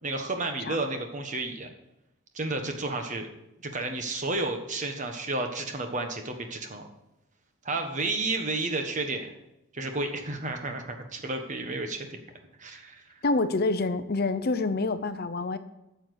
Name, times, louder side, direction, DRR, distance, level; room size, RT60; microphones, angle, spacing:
voice 1, 0.0-1.7 2.3-3.3 3.6-6.8 7.6-9.3 9.7-12.1 12.6-13.0, right 2 dB, 35° right, 5 dB, 1.3 m, -31 dB
voice 2, 13.2-15.6, left 3 dB, 45° left, 12 dB, 0.6 m, -27 dB
8.7 x 7.1 x 8.1 m, 0.90 s
head